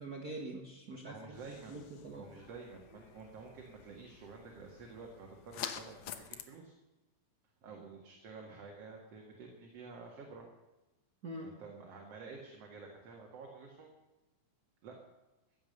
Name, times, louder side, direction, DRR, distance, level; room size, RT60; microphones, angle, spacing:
voice 1, 0.0-2.3 11.2-11.5, right 2 dB, 65° right, 1 dB, 0.9 m, -44 dB
voice 2, 1.1-1.8 2.1-6.7 7.6-10.5 11.4-13.9 14.8-15.0, right 4 dB, 50° right, 0 dB, 2.5 m, -50 dB
sound 1, 1.3-6.4, left 9 dB, 70° left, 1.8 m, -48 dB
15.5 x 10.5 x 6.6 m, 1.1 s
omnidirectional pair, 4.1 m